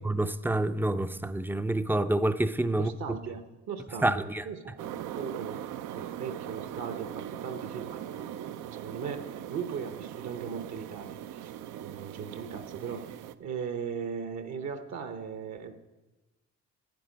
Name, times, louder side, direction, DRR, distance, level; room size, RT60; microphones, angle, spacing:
voice 1, 0.0-2.9 4.0-4.4, right 1 dB, 5° right, 0.4 m, -27 dB
voice 2, 2.7-5.6 5.9-15.7, right 6 dB, 65° right, 1.0 m, -38 dB
sound 1, 4.8-13.3, right 11 dB, 85° right, 0.5 m, -40 dB
12.0 x 8.9 x 5.2 m
cardioid pair, 90°, 30 cm